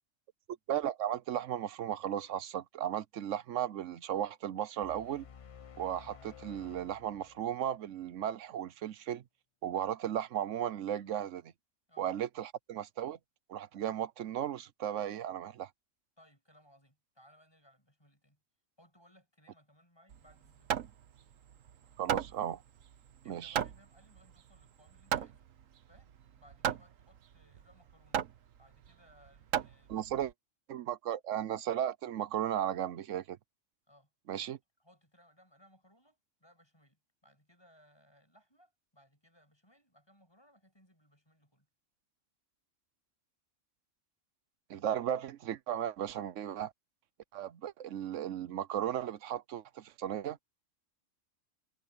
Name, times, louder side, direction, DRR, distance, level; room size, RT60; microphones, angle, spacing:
voice 1, 0.7-5.2 5.8-9.2 9.6-11.5 12.0-13.2 13.5-15.7 22.0-22.6 23.3-23.6 29.9-30.3 30.7-33.4 34.3-34.6 44.7-46.7 47.3-50.4, right 10 dB, 75° right, 1.1 m, -35 dB
sound 1, 4.8-8.1, left 7 dB, 40° left, 0.5 m, -54 dB
voice 2, 16.2-18.4 18.8-20.7 23.2-25.5 25.9-26.1 26.4-28.2 28.6-30.3 33.9-41.7, equal, 20° left, 8.2 m, -65 dB
Hammer, 20.1-30.3, right 9 dB, 90° right, 1.4 m, -37 dB
omnidirectional pair, 1.3 m